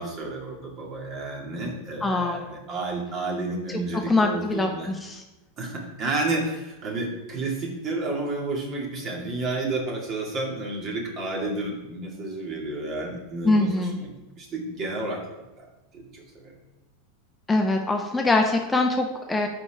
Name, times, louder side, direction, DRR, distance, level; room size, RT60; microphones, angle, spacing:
voice 1, 0.0-4.9 5.6-14.1 14.4-15.7 15.9-16.6, right 2 dB, 40° right, -1 dB, 2.1 m, -31 dB
voice 2, 2.0-2.4 4.1-5.2 13.4-14.0 17.5-19.5, left 2 dB, 15° left, 3 dB, 0.7 m, -23 dB
5.3 x 5.1 x 5.8 m, 1.0 s
hypercardioid pair, 95°, 0 cm